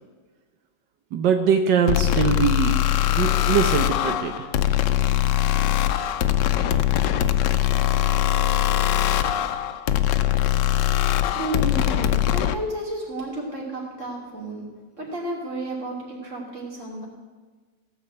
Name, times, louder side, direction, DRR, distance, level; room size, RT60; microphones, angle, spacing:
voice 1, 1.1-2.8 3.2-4.5, right 7 dB, 90° right, 6 dB, 1.5 m, -22 dB
sound 1, 1.9-12.6, left 13 dB, 85° left, 1.3 m, -22 dB
voice 2, 11.3-14.6 15.0-17.1, right 1 dB, 45° right, -2 dB, 3.3 m, -32 dB
16.0 x 5.6 x 8.0 m, 1.4 s
omnidirectional pair, 1.8 m